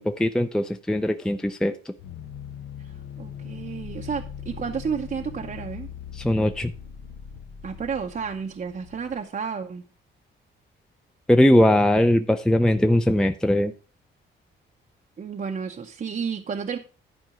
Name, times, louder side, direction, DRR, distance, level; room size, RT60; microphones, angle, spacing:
voice 1, 0.0-1.8 6.1-6.7 11.3-13.7, left 1 dB, 5° left, 0.5 m, -20 dB
sound 1, 2.0-9.2, left 8 dB, 80° left, 0.9 m, -40 dB
voice 2, 2.8-5.9 7.6-9.8 15.2-16.8, right 6 dB, 40° right, 0.7 m, -31 dB
11.0 x 4.5 x 4.9 m
cardioid pair, 85°, 21 cm